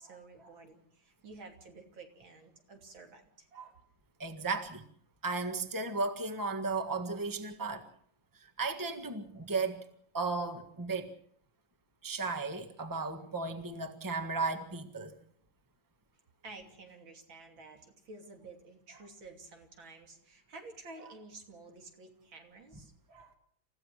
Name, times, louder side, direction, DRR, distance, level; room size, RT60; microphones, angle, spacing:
voice 1, 0.0-3.8 16.4-23.4, right 3 dB, 85° right, 3.8 m, -51 dB
voice 2, 4.2-4.8 5.2-7.8 8.4-9.9 10.1-11.1 12.0-15.1, right 3 dB, 10° right, 1.5 m, -35 dB
28.5 x 15.0 x 6.4 m
omnidirectional pair, 2.1 m